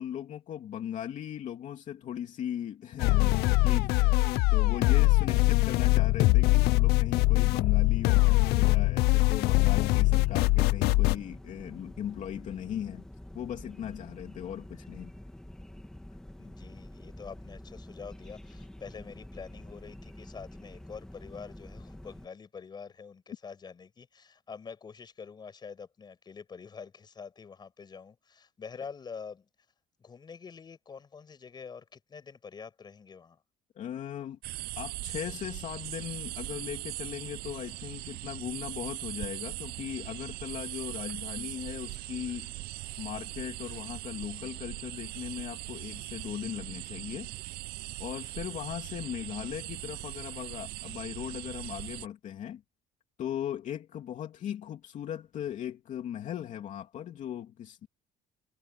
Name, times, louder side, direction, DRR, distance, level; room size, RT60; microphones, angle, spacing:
voice 1, 0.0-4.2 4.5-13.0 13.3-15.1 33.8-34.4 34.8-42.5 43.0-47.3 48.0-52.6 53.2-57.9, left 10 dB, 50° left, 2.9 m, -38 dB
sound 1, 3.0-11.2, left 21 dB, 80° left, 0.5 m, -23 dB
sound 2, 10.0-22.3, left 1 dB, 5° left, 1.8 m, -47 dB
voice 2, 16.4-29.5 30.0-33.4, left 6 dB, 25° left, 5.7 m, -46 dB
sound 3, 34.4-52.1, right 19 dB, 75° right, 0.5 m, -40 dB
cardioid pair, 150°, 16 cm